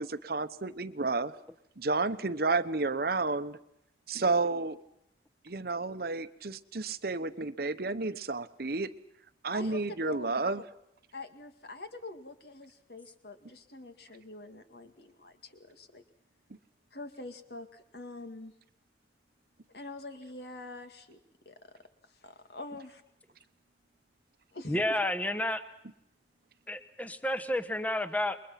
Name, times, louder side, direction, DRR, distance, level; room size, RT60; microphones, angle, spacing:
voice 1, 0.0-1.3 1.8-3.6 4.1-4.8 5.4-8.9 9.4-10.6, right 3 dB, 55° right, 12 dB, 1.0 m, -31 dB
voice 2, 10.0-10.6 11.1-16.0 16.9-18.5 19.7-21.2 21.5-21.6 22.0-23.0 24.5-25.0, left 2 dB, 60° left, 7 dB, 2.2 m, -45 dB
voice 3, 24.7-25.6 26.7-28.4, left 1 dB, 10° left, 9 dB, 1.2 m, -31 dB
28.5 x 22.0 x 5.9 m, 0.78 s
head